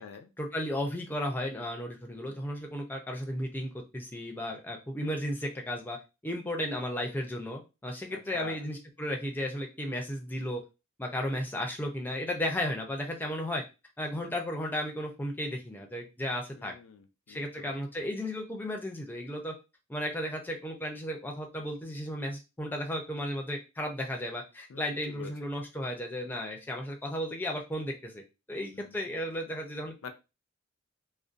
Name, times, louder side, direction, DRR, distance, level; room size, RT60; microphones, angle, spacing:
voice 1, 0.4-6.0 6.2-10.6 11.0-13.6 14.0-16.7 17.3-19.5 19.9-28.2 28.5-29.9, equal, 10° left, 2 dB, 0.4 m, -34 dB
voice 2, 8.1-8.7 16.5-17.7 24.7-25.5 28.7-29.1 30.0-30.1, left 6 dB, 85° left, 7 dB, 0.4 m, -46 dB
2.5 x 2.1 x 2.4 m, 0.28 s
head